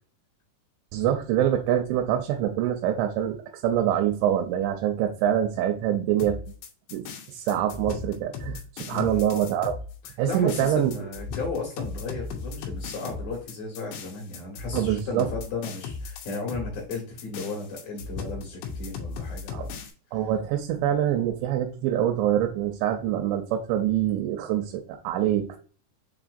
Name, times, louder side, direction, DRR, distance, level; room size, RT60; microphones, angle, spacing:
voice 1, 0.9-6.4 6.9-7.0 7.3-9.8 10.2-10.9 14.7-15.3 19.5-19.6 20.1-25.6, right 10 dB, 90° right, 4 dB, 3.0 m, -25 dB
sound 1, 6.2-19.9, left 5 dB, 85° left, 3.2 m, -37 dB
voice 2, 8.9-9.3 10.3-19.7, left 3 dB, 60° left, -3 dB, 3.0 m, -35 dB
7.2 x 2.9 x 2.5 m, 0.41 s
omnidirectional pair, 5.1 m